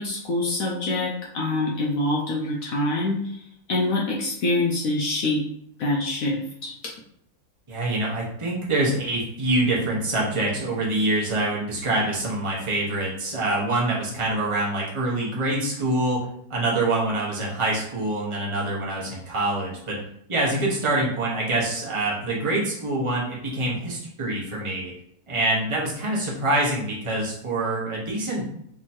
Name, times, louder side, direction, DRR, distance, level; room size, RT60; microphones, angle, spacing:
voice 1, 0.0-3.4 3.7-5.5 5.8-6.7, left 2 dB, 65° left, -2 dB, 1.0 m, -25 dB
voice 2, 7.7-16.2 16.5-20.0 20.3-24.9 25.3-28.5, right 2 dB, 20° right, -5 dB, 1.0 m, -25 dB
3.6 x 3.0 x 4.3 m, 0.72 s
omnidirectional pair, 1.7 m